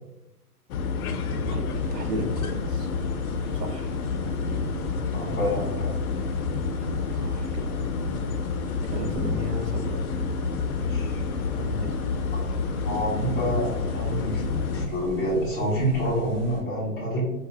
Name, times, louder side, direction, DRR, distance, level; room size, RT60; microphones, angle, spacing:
sound 1, 0.7-14.9, left 4 dB, 65° left, 0.5 m, -29 dB
voice 1, 1.1-2.9 3.5-3.9 7.1-7.6 8.9-10.0 11.7-12.0, right 1 dB, 85° right, 5 dB, 0.8 m, -34 dB
sound 2, 1.7-16.6, right 1 dB, 40° right, 1.3 m, -42 dB
voice 2, 5.1-5.9 10.8-11.2 11.6-11.9 12.8-17.2, equal, 5° left, -12 dB, 0.4 m, -28 dB
4.7 x 2.1 x 2.8 m, 0.96 s
hypercardioid pair, 135°, 47 cm